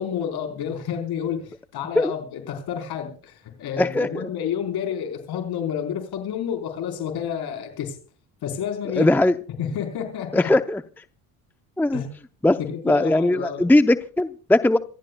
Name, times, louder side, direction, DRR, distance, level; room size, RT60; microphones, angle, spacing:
voice 1, 0.0-8.0 8.4-9.2 9.6-10.5 11.9-12.1 12.7-13.7, left 8 dB, 70° left, 4 dB, 4.3 m, -30 dB
voice 2, 3.8-4.3 9.0-9.3 10.3-10.8 11.8-12.0 12.4-12.6 12.9-14.8, left 1 dB, 5° left, 10 dB, 0.6 m, -19 dB
27.0 x 15.0 x 2.3 m, 0.39 s
supercardioid pair, 85°, 40 cm